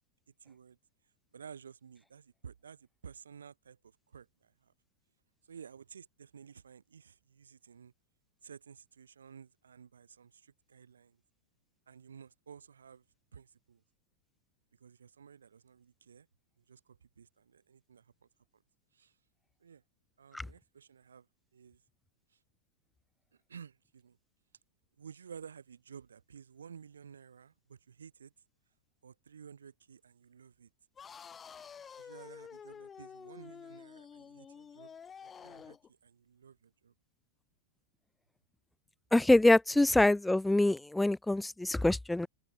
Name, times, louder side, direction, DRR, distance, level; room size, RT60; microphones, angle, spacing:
voice 1, 0.4-0.8 1.3-4.7 5.4-7.9 8.4-11.2 11.9-13.0 13.3-13.8 14.8-16.3 16.6-18.1 18.5-18.6 18.9-19.2 19.6-19.8 20.2-21.3 21.5-21.8 22.3-22.4 23.5-24.2 25.0-28.3 29.0-30.7 32.0-35.8 36.0-36.9 39.7-39.8, right 7 dB, 70° right, 6.6 m, -53 dB
sound 1, 31.0-35.9, left 7 dB, 20° left, 7.1 m, -50 dB
voice 2, 39.1-42.3, left 2 dB, 5° left, 0.6 m, -25 dB
open air
figure-of-eight pair, 90°, 0 cm